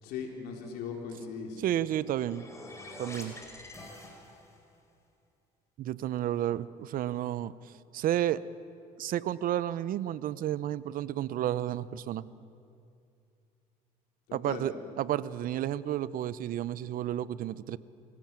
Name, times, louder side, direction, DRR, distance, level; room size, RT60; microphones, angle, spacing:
voice 1, 0.0-1.6 14.3-14.7, left 6 dB, 80° left, 1 dB, 4.0 m, -39 dB
voice 2, 1.6-2.5 3.0-3.4 5.8-8.4 9.0-12.3 14.3-17.8, right 12 dB, 60° right, 18 dB, 0.7 m, -31 dB
sound 1, 1.7-4.7, left 2 dB, 20° left, 4.8 m, -47 dB
27.0 x 16.0 x 7.6 m, 2.5 s
supercardioid pair, 85°, 16 cm